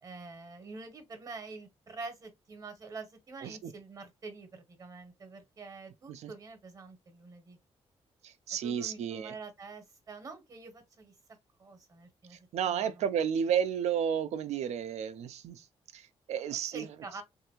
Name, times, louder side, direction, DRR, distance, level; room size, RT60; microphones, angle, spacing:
voice 1, 0.0-7.6 8.6-11.1 11.6-13.0 16.7-17.2, right 3 dB, 30° right, 0.8 m, -46 dB
voice 2, 8.2-9.3 12.5-15.6 15.9-16.9, right 8 dB, 85° right, 0.4 m, -32 dB
3.4 x 2.5 x 2.9 m
wide cardioid pair, 175°, 11 cm